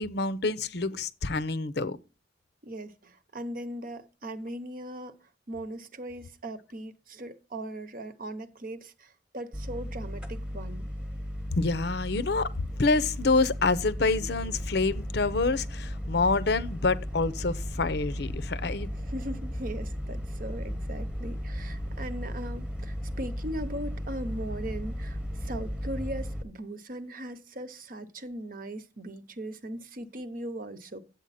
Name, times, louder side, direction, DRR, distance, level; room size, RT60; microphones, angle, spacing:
voice 1, 0.0-2.0 11.5-12.5 12.8-18.9, left 3 dB, 60° left, 0.7 m, -27 dB
voice 2, 2.6-5.2 5.5-10.9 19.0-31.0, right 1 dB, 50° right, 0.9 m, -39 dB
sound 1, 9.5-26.4, equal, 5° right, 1.1 m, -35 dB
9.9 x 8.0 x 4.2 m
head